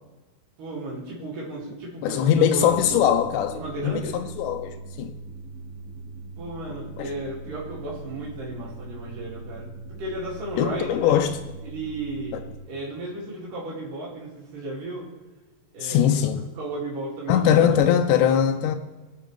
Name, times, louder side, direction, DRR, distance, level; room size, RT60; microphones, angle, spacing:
voice 1, 0.6-3.1 3.5-4.3 6.4-9.7 10.0-11.2 11.6-12.4 12.7-15.1 15.7-16.0 16.6-17.8 18.1-18.3, right 2 dB, 85° right, 4.0 m, -34 dB
voice 2, 2.0-5.2 6.7-7.1 10.6-11.4 12.3-12.4 15.8-16.5 17.3-18.8, left 9 dB, 90° left, 2.1 m, -21 dB
sound 1, 2.5-12.6, right 3 dB, 35° right, 1.3 m, -41 dB
19.5 x 6.5 x 3.2 m
omnidirectional pair, 3.6 m